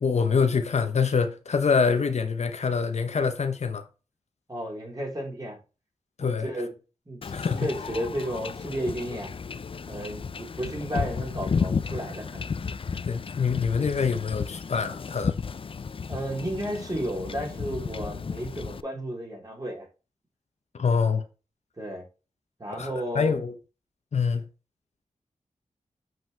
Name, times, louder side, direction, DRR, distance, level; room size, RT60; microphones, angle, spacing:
voice 1, 0.0-3.8 6.2-6.5 7.3-7.7 13.1-15.4 20.8-21.2 22.8-23.5 24.1-24.4, left 5 dB, 65° left, 1.0 m, -25 dB
voice 2, 4.5-5.6 6.2-6.7 7.1-7.3 7.6-9.3 9.9-12.4 16.1-19.9 21.8-22.1 22.6-23.4, right 1 dB, 30° right, 4.1 m, -33 dB
Wind / Ocean / Boat Water vehicle, 7.2-18.8, left 5 dB, 45° left, 0.4 m, -33 dB
7.7 x 5.3 x 3.4 m
wide cardioid pair, 70°, 12 cm